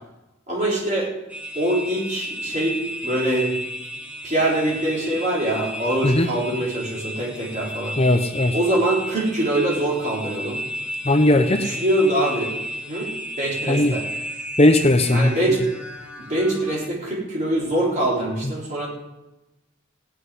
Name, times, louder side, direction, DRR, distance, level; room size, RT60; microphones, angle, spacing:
voice 1, 0.5-1.1 1.5-3.6 4.2-8.0 8.5-10.6 11.6-12.5 12.9-14.1 15.1-15.6 16.2-18.9, right 1 dB, 35° right, -4 dB, 4.0 m, -23 dB
sound 1, 1.3-16.9, equal, 5° right, 1.2 m, -33 dB
voice 2, 8.0-8.5 11.0-11.7 13.7-13.9 14.6-15.3, left 1 dB, 30° left, 6 dB, 0.7 m, -17 dB
15.5 x 6.1 x 9.6 m, 0.99 s
head